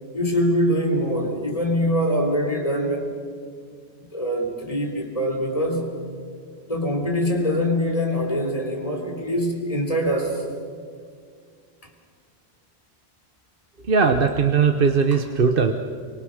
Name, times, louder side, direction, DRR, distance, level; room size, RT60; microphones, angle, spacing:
voice 1, 0.1-3.1 4.1-5.9 6.7-10.4 15.1-15.2, equal, 35° left, 1 dB, 3.8 m, -23 dB
voice 2, 13.9-15.7, right 5 dB, 60° right, 6 dB, 1.2 m, -19 dB
28.5 x 24.0 x 6.5 m, 2.1 s
omnidirectional pair, 1.1 m